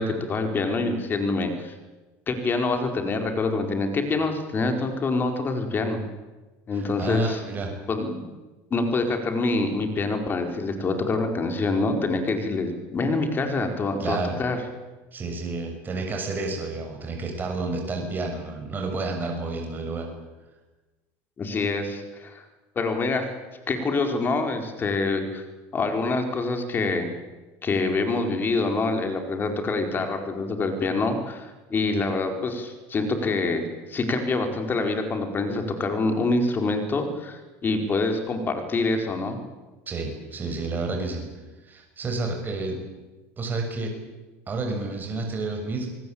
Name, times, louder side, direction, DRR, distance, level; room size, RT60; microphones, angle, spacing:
voice 1, 0.0-1.7 2.3-6.0 6.7-7.4 7.9-8.2 8.7-14.6 21.4-22.4 22.7-23.3 23.7-25.4 25.7-27.1 27.6-39.4, left 3 dB, 30° left, 5 dB, 4.6 m, -26 dB
voice 2, 6.7-7.7 14.0-14.4 15.1-20.1 39.9-41.3 41.6-42.8 43.4-43.9 44.5-45.9, right 3 dB, 25° right, 3 dB, 6.6 m, -30 dB
27.5 x 19.0 x 8.8 m, 1.2 s
supercardioid pair, 120°, 7 cm